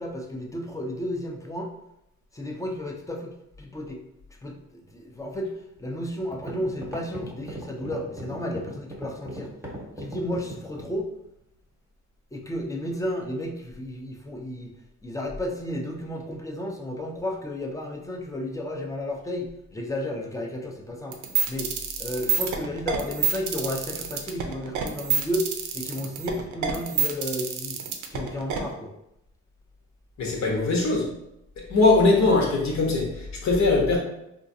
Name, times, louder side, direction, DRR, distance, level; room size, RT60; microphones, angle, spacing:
voice 1, 0.0-1.7 2.3-4.0 4.4-5.5 5.8-9.5 10.0-11.1 12.3-14.7 15.0-21.2 21.5-21.7 22.0-25.5 25.7-27.8 28.1-28.9, left 1 dB, 10° left, 1 dB, 0.5 m, -32 dB
sound 1, 6.3-11.0, right 1 dB, 10° right, 1.0 m, -37 dB
sound 2, 21.1-28.6, right 7 dB, 80° right, 0.6 m, -27 dB
voice 2, 30.2-31.1 31.7-34.0, left 3 dB, 65° left, -1 dB, 1.1 m, -21 dB
3.7 x 2.4 x 2.6 m, 0.83 s
cardioid pair, 90°, 30 cm